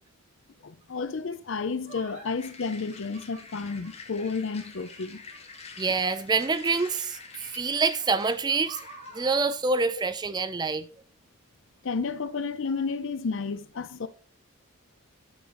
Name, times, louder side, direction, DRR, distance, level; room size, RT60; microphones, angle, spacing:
voice 1, 0.6-5.2 11.8-14.1, left 4 dB, 60° left, 0.5 m, -31 dB
sound 1, 1.8-2.3 2.9-5.7 6.3-9.6, right 2 dB, 35° right, 2.1 m, -50 dB
sound 2, 2.2-9.4, left 4 dB, 30° left, 0.8 m, -47 dB
voice 2, 5.8-8.8 9.1-10.9, right 4 dB, 20° right, 0.3 m, -26 dB
9.5 x 3.8 x 4.0 m
head